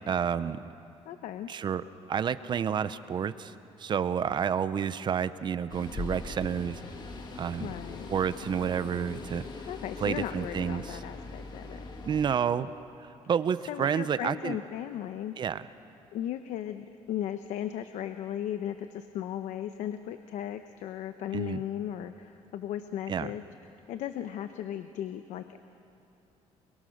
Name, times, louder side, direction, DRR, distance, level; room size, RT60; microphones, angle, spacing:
voice 1, 0.1-0.6 1.5-3.5 3.8-6.8 7.4-7.7 8.1-9.4 10.0-11.0 12.0-12.7 13.3-14.6 15.4-15.7 21.3-21.6 23.1-23.3, right 7 dB, 40° right, 14 dB, 0.7 m, -29 dB
voice 2, 1.1-1.5 7.6-8.1 9.7-11.8 13.7-15.3 16.1-23.4 23.9-25.6, left 11 dB, 80° left, 9 dB, 0.8 m, -36 dB
sound 1, 5.7-12.3, left 3 dB, 35° left, 2.0 m, -41 dB
28.0 x 22.5 x 6.5 m, 2.7 s
cardioid pair, 140°, 12 cm